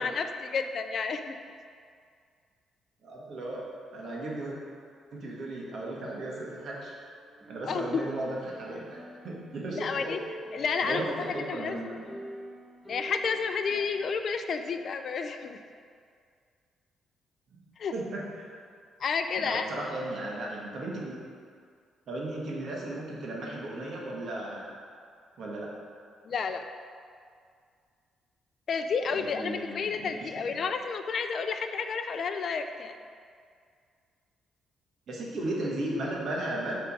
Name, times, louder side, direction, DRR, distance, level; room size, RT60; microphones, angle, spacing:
voice 1, 0.0-1.3 7.7-8.0 9.7-10.2 10.5-11.0 11.5-11.8 12.9-15.6 17.8-17.9 19.0-19.7 26.3-26.6 28.7-33.0, left 5 dB, 55° left, 7 dB, 0.4 m, -31 dB
voice 2, 3.0-4.6 5.1-6.9 7.5-10.1 10.8-12.1 17.5-17.6 17.9-18.5 19.4-21.2 22.1-24.7 25.4-25.7 29.1-30.6 35.1-36.8, right 1 dB, 60° right, -3 dB, 1.6 m, -36 dB
sound 1, 6.2-14.0, equal, 5° right, 1.3 m, -46 dB
6.8 x 3.6 x 6.2 m, 2.2 s
cardioid pair, 90°, 0 cm